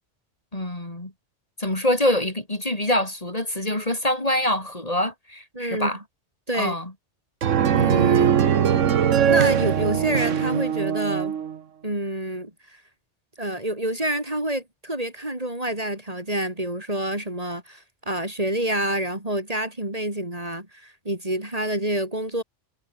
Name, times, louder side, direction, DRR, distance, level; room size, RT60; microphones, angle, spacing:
voice 1, 0.5-1.1 1.6-6.0 6.5-6.9, left 1 dB, 30° left, 3.6 m, -25 dB
voice 2, 5.5-5.9 6.5-6.8 7.7-8.3 9.2-11.4 11.8-12.8 13.4-22.4, right 1 dB, 30° right, 4.0 m, -27 dB
sound 1, 7.4-11.6, right 8 dB, 85° right, 1.4 m, -21 dB
omnidirectional pair, 1.2 m